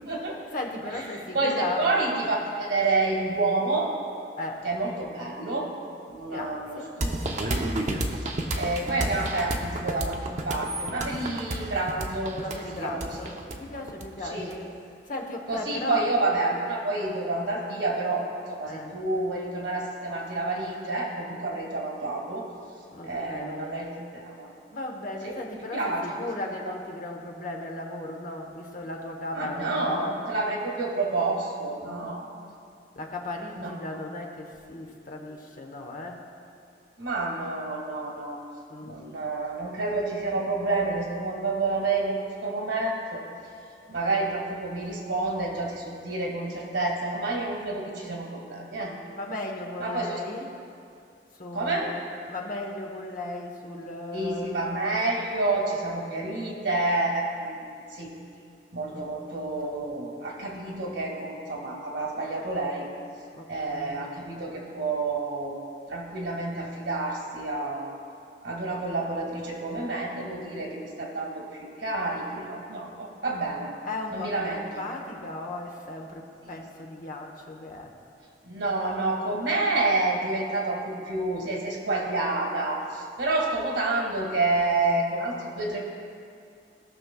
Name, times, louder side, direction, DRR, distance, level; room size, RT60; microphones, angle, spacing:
voice 1, 0.1-2.0 4.4-4.7 6.3-7.0 12.3-16.2 18.6-19.0 22.9-24.1 24.7-30.3 31.8-32.2 32.9-36.3 38.7-39.1 48.8-50.6 51.3-54.6 56.0-56.3 58.9-59.1 63.3-64.1 72.9-73.1 73.8-77.9, left 2 dB, 50° left, 1 dB, 1.1 m, -36 dB
voice 2, 1.1-3.9 4.6-5.7 6.1-7.6 8.0-12.4 12.7-13.2 14.3-14.5 15.5-22.4 23.0-24.5 25.2-25.3 25.7-26.0 29.3-32.3 33.6-33.7 37.0-38.4 38.8-43.2 43.9-48.9 49.8-50.2 51.5-51.9 54.1-57.6 57.9-58.1 58.7-62.9 63.5-65.6 65.9-68.0 68.4-73.7 74.1-74.8 76.4-76.6 78.4-85.8, right 2 dB, 85° right, -2 dB, 1.8 m, -29 dB
sound 1, 7.0-14.6, right 1 dB, 45° right, 0.7 m, -30 dB
18.5 x 6.3 x 2.3 m, 2.4 s
head